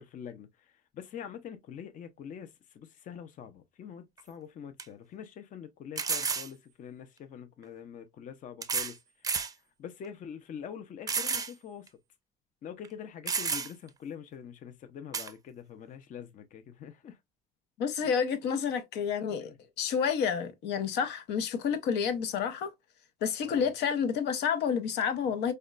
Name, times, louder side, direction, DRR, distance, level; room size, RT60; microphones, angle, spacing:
voice 1, 0.0-9.0 9.8-12.0 12.6-17.2 19.4-19.6 23.4-23.7, left 8 dB, 50° left, 0.6 m, -45 dB
sound 1, 4.2-4.3 4.8-4.9 6.0-6.5 7.6-7.7 8.6-9.0 9.2-9.5 10.0-10.1 11.1-11.5 11.9-12.0 12.8-12.9 13.3-13.9 15.1-15.3, right 5 dB, 20° right, 0.5 m, -31 dB
voice 2, 17.8-22.7 23.2-25.5, left 7 dB, 80° left, 0.7 m, -29 dB
4.9 x 2.2 x 2.4 m
cardioid pair, 110°, 17 cm